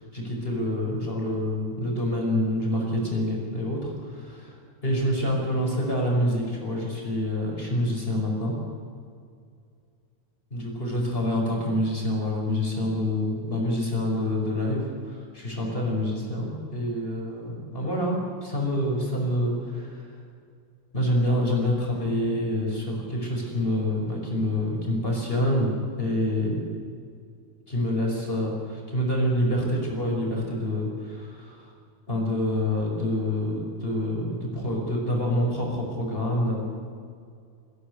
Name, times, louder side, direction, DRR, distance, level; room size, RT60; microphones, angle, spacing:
voice 1, 0.1-4.5 4.8-8.5 10.5-14.8 15.1-20.1 20.9-25.7 26.0-26.6 27.7-31.6 32.1-36.6, left 1 dB, 15° left, -2 dB, 5.6 m, -27 dB
21.0 x 17.0 x 9.8 m, 2.3 s
omnidirectional pair, 3.4 m